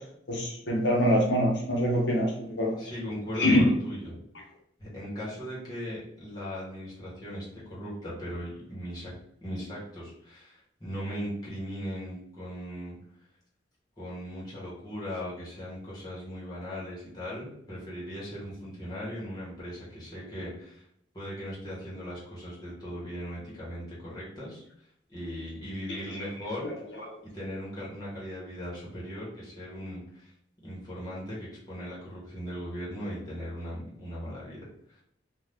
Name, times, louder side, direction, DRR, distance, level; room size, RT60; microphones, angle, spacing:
voice 1, 0.3-2.8 3.4-3.6 26.1-26.2, equal, 80° left, -1 dB, 0.8 m, -24 dB
voice 2, 2.8-4.2 4.8-9.1 9.4-13.0 14.0-20.9 21.1-24.6 25.1-26.7 27.2-30.3 30.6-34.6 34.9-35.0, equal, 20° left, -7 dB, 1.1 m, -38 dB
2.7 x 2.3 x 3.4 m, 0.71 s
head